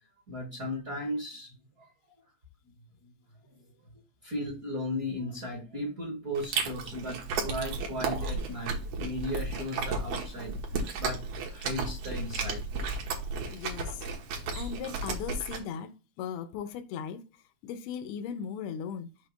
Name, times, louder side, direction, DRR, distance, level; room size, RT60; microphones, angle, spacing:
voice 1, 0.3-1.9 2.7-2.8 3.0-3.1 3.5-3.6 4.2-10.6 10.8-11.2 11.5-12.6, left 1 dB, 45° right, 1.2 m, -36 dB
Chewing mastication, 6.4-15.6, right 4 dB, 80° right, 2.5 m, -34 dB
voice 2, 13.5-14.0 14.5-15.9 16.2-17.2 17.6-19.1, left 8 dB, 80° left, 1.3 m, -37 dB
6.5 x 3.0 x 5.0 m
omnidirectional pair, 3.3 m